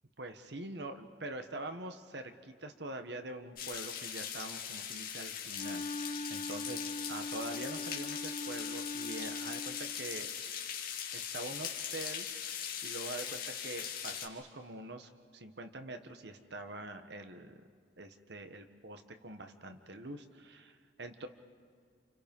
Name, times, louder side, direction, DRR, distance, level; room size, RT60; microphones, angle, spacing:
voice 1, 0.2-10.3 11.1-17.6 18.0-21.3, right 2 dB, 65° right, 7 dB, 1.6 m, -45 dB
sound 1, 3.6-14.3, left 8 dB, 55° left, 2.3 m, -40 dB
Wind instrument woodwind instrument, 5.5-10.0, left 2 dB, 35° left, 0.6 m, -41 dB
29.5 x 28.0 x 5.5 m, 2.1 s
head